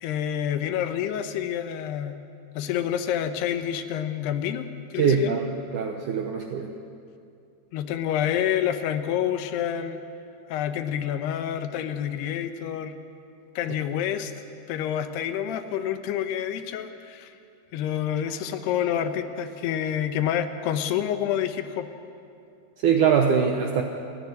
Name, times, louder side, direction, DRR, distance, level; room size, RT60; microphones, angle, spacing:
voice 1, 0.0-2.2 2.6-5.4 7.7-10.0 10.5-12.9 13.6-14.3 14.7-17.3 17.7-21.9, left 10 dB, 80° left, 9 dB, 2.9 m, -28 dB
voice 2, 5.0-6.7 22.8-23.8, right 6 dB, 75° right, 4 dB, 1.8 m, -22 dB
28.5 x 10.5 x 9.6 m, 2.5 s
omnidirectional pair, 4.8 m